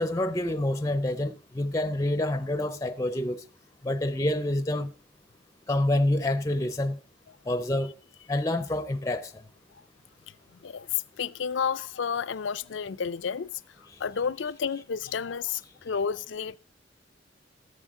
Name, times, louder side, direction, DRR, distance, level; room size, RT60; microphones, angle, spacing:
voice 1, 0.0-3.4 3.8-4.9 5.7-7.0 7.5-7.9 8.3-9.4, left 1 dB, 15° left, 0.5 m, -27 dB
voice 2, 10.6-13.6 14.0-16.6, left 6 dB, 75° left, 0.5 m, -31 dB
14.0 x 10.0 x 3.7 m
head